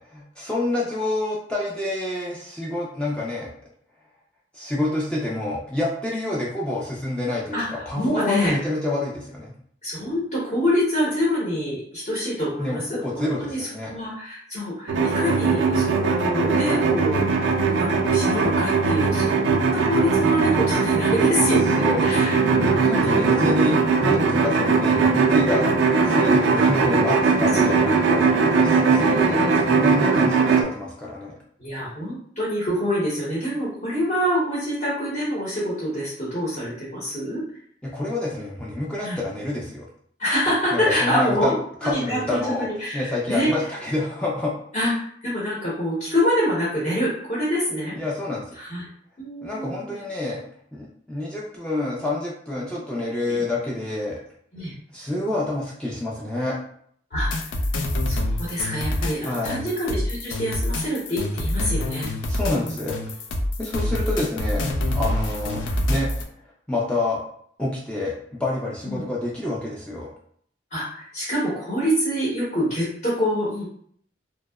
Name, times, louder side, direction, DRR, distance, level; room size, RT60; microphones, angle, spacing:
voice 1, 0.1-3.5 4.5-9.5 12.6-13.9 21.8-31.3 37.8-39.9 40.7-41.5 41.8-42.7 42.9-44.5 47.9-48.4 49.4-50.4 50.7-54.2 54.9-56.6 59.2-59.6 62.3-63.0 63.6-65.6 65.9-66.1 66.7-67.2 67.6-70.1, left 2 dB, 5° left, -5 dB, 0.3 m, -28 dB
voice 2, 7.9-8.5 9.8-22.4 27.6-27.8 29.0-29.5 31.6-37.4 39.0-39.2 40.2-41.6 41.8-43.5 44.7-44.9 45.2-48.0 48.6-48.8 49.2-50.0 53.3-53.4 54.5-54.7 57.1-57.3 58.1-62.1 62.5-62.8 68.8-69.0 70.7-73.6, equal, 40° left, -8 dB, 0.8 m, -26 dB
sound 1, 14.9-30.6, right 4 dB, 80° right, 0.4 m, -20 dB
sound 2, 57.1-66.2, left 1 dB, 85° left, 0.4 m, -26 dB
2.7 x 2.0 x 2.2 m, 0.63 s
head